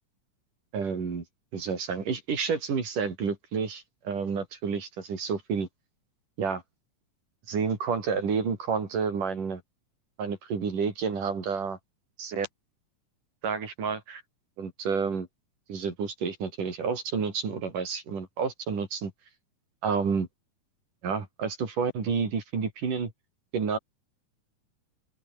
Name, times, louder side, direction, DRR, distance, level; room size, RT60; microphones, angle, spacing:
voice 1, 0.7-1.2 1.5-5.7 6.4-6.6 7.5-9.6 10.2-11.8 12.2-12.5 13.4-14.2 14.6-15.3 15.7-19.1 19.8-20.3 21.0-23.1 23.5-23.8, right 5 dB, 75° right, 6.0 m, -30 dB
open air
omnidirectional pair, 3.7 m